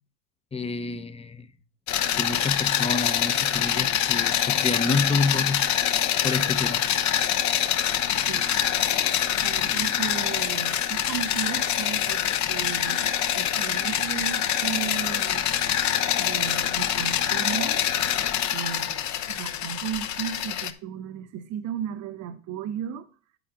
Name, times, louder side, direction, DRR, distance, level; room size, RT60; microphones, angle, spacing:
voice 1, 0.5-1.5 2.1-5.6 6.2-6.8, left 3 dB, 15° left, 0.8 m, -28 dB
sound 1, 1.9-20.7, left 10 dB, 40° left, 1.0 m, -25 dB
voice 2, 9.4-15.5 16.2-17.8 18.5-23.1, right 9 dB, 40° right, 0.9 m, -35 dB
9.9 x 4.8 x 5.0 m
hypercardioid pair, 100°, 42 cm